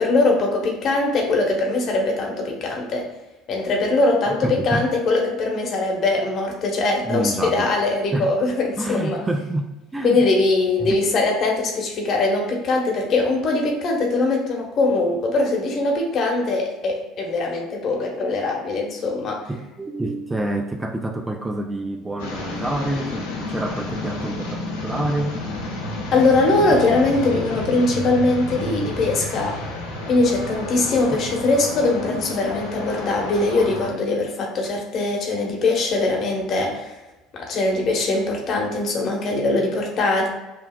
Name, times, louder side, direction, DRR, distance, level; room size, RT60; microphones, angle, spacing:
voice 1, 0.0-3.1 3.5-9.2 10.0-19.4 26.1-29.6 30.1-36.9 37.3-40.3, left 2 dB, 50° left, 0 dB, 1.0 m, -21 dB
voice 2, 4.3-4.9 7.0-7.7 8.1-8.3 8.8-10.3 10.8-11.0 19.5-25.4 31.1-31.2, right 1 dB, 15° right, 5 dB, 0.4 m, -27 dB
sound 1, 22.2-33.9, left 2 dB, 80° left, 0.8 m, -31 dB
5.8 x 2.3 x 2.2 m, 1.0 s
hypercardioid pair, 65°, 0 cm